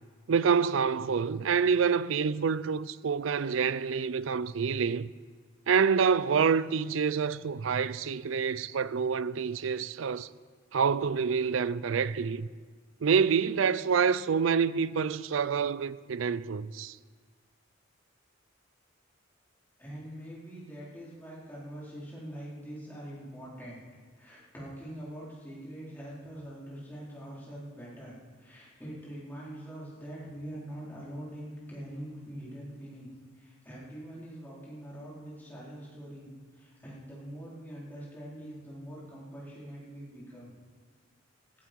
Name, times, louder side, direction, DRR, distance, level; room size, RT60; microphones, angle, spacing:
voice 1, 0.3-5.1 5.7-10.3 10.7-12.5 13.0-17.0, right 6 dB, 85° right, 0.5 m, -27 dB
voice 2, 19.8-23.8 24.2-33.1 33.3-40.5, equal, 10° left, 4.2 m, -44 dB
16.5 x 15.0 x 4.6 m
head